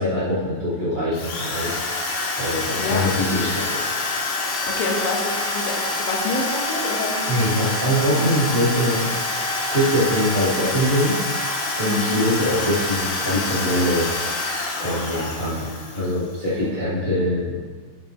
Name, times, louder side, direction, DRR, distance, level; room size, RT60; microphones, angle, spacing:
voice 1, 0.0-1.7 2.4-3.9 7.3-9.1 9.7-14.1 14.8-17.6, equal, 35° left, -10 dB, 0.8 m, -23 dB
Drill, 1.1-16.3, left 2 dB, 65° left, 4.2 m, -26 dB
voice 2, 4.7-7.6 7.9-8.2 11.8-12.2 14.8-15.1 15.6-15.7 16.0-16.3 16.6-17.3, left 3 dB, 80° left, 0 dB, 3.9 m, -29 dB
10.0 x 7.9 x 3.3 m, 1.5 s
omnidirectional pair, 5.6 m